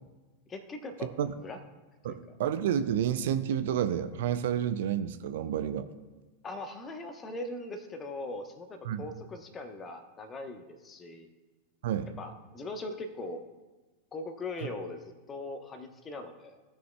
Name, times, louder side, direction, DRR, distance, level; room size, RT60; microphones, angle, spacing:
voice 1, 0.5-1.1 1.4-1.6 2.0-2.4 6.4-11.3 12.2-13.4 14.1-16.6, left 2 dB, 20° left, 7 dB, 1.0 m, -40 dB
voice 2, 2.0-5.9 8.9-9.1 11.8-12.1, right 9 dB, 55° right, 13 dB, 0.5 m, -30 dB
16.0 x 6.2 x 2.3 m, 1.2 s
figure-of-eight pair, 90°, 0 cm